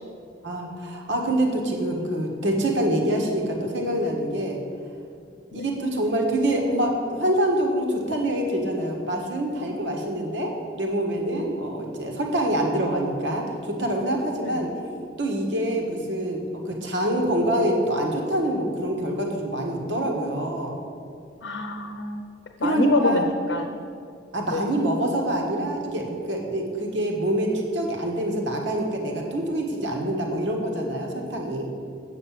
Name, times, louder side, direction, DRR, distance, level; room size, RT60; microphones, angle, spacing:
voice 1, 0.4-4.6 5.5-14.7 15.2-20.8 22.6-23.2 24.3-31.7, right 1 dB, 75° right, 1 dB, 1.6 m, -25 dB
voice 2, 14.4-14.7 21.4-22.3 22.6-23.8 24.5-24.7, left 2 dB, 80° left, 5 dB, 0.8 m, -26 dB
8.1 x 6.6 x 7.5 m, 2.5 s
head